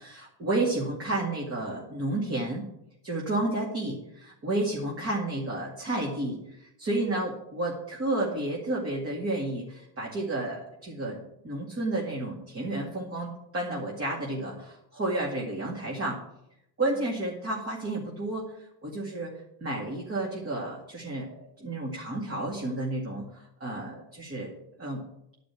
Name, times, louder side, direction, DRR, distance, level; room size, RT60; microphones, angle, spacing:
voice 1, 0.0-2.6 3.0-16.2 16.8-19.3 19.6-21.3 21.6-25.0, right 2 dB, 25° right, -3 dB, 2.3 m, -31 dB
11.0 x 5.2 x 8.3 m, 0.80 s
cardioid pair, 155°, 48 cm